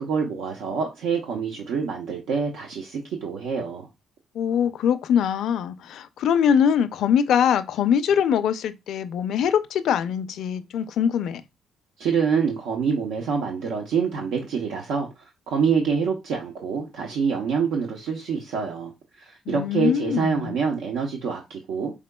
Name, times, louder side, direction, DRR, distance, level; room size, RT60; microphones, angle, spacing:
voice 1, 0.0-3.9 12.0-18.9 19.2-21.9, right 6 dB, 85° right, 0.7 m, -26 dB
voice 2, 4.3-11.4 19.5-20.6, left 8 dB, 75° left, 0.4 m, -23 dB
5.1 x 3.6 x 2.2 m
cardioid pair, 90°, 0 cm